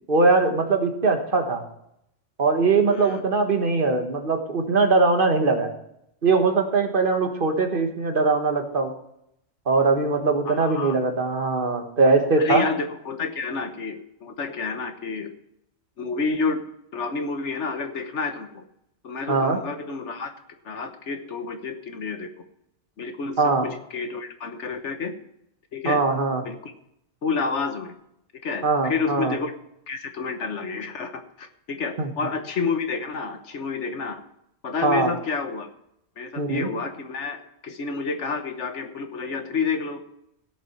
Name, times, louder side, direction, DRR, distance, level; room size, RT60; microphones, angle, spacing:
voice 1, 0.1-1.6 2.4-5.7 6.2-8.9 9.7-12.6 19.3-19.6 23.4-23.7 25.8-26.4 28.6-29.3 32.0-32.1 34.8-35.1 36.4-36.7, right 3 dB, 45° right, 5 dB, 1.6 m, -21 dB
voice 2, 2.9-3.2 10.4-11.0 12.4-15.3 16.0-16.6 16.9-18.6 19.0-20.3 20.6-22.3 23.0-25.1 25.7-26.0 26.4-26.7 27.2-27.9 28.4-29.5 29.9-34.2 34.6-35.7 36.2-40.0, left 4 dB, 70° left, 7 dB, 1.4 m, -29 dB
16.5 x 6.9 x 4.5 m, 0.77 s
omnidirectional pair, 1.3 m